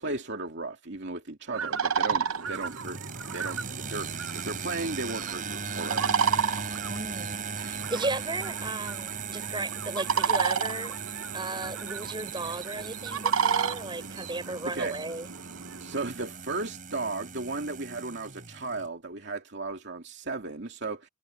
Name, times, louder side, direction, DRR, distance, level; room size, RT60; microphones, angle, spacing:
voice 1, 0.0-3.0 3.3-6.8 14.1-14.4 14.6-15.0 15.8-21.1, right 3 dB, 55° right, 2.6 m, -35 dB
sound 1, 1.5-16.1, right 6 dB, 80° right, 0.9 m, -32 dB
sound 2, 2.1-18.9, right 5 dB, 40° right, 5.4 m, -38 dB
voice 2, 6.9-10.9 11.3-15.3, right 2 dB, 20° right, 6.2 m, -35 dB
head